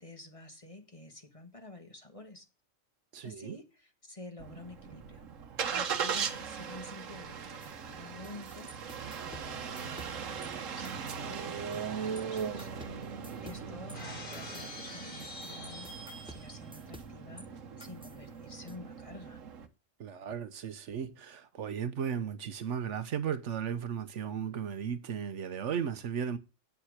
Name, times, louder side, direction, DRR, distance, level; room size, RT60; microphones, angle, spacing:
voice 1, 0.0-2.4 3.2-5.2 5.7-8.9 9.2-12.7 12.9-13.1 13.4-19.4, left 2 dB, 25° left, 1.5 m, -50 dB
voice 2, 3.1-3.6 13.3-13.5 20.0-26.4, right 8 dB, 70° right, 1.1 m, -35 dB
Engine starting, 4.4-19.7, right 6 dB, 85° right, 1.4 m, -39 dB
sound 1, 7.6-10.5 10.8-11.9 12.2-17.5 17.8-18.8, right 1 dB, 5° right, 0.7 m, -53 dB
Shatter, 13.9-16.7, left 2 dB, 50° left, 4.2 m, -46 dB
8.5 x 7.2 x 6.4 m
omnidirectional pair, 1.3 m